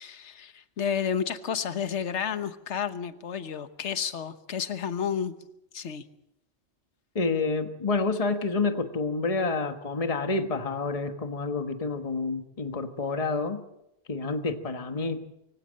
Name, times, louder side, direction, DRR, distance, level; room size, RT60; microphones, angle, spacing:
voice 1, 0.0-5.3 5.7-6.0, left 7 dB, 70° left, 11 dB, 1.4 m, -31 dB
voice 2, 7.1-13.6 14.1-15.3, left 3 dB, 30° left, 7 dB, 1.3 m, -28 dB
24.5 x 16.5 x 7.6 m, 0.83 s
omnidirectional pair, 1.3 m